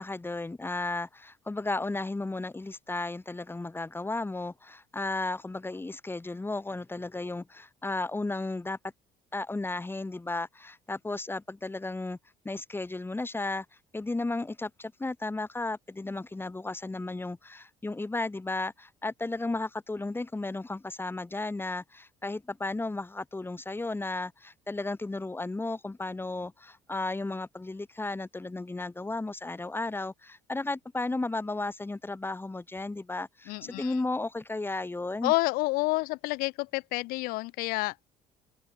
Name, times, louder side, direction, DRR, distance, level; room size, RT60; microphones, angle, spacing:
voice 1, 0.0-8.8 9.3-12.2 12.4-13.7 13.9-35.3, left 2 dB, 15° left, 5.5 m, -34 dB
voice 2, 33.5-33.9 35.2-37.9, left 23 dB, 85° left, 0.8 m, -29 dB
open air
cardioid pair, 100°, 15 cm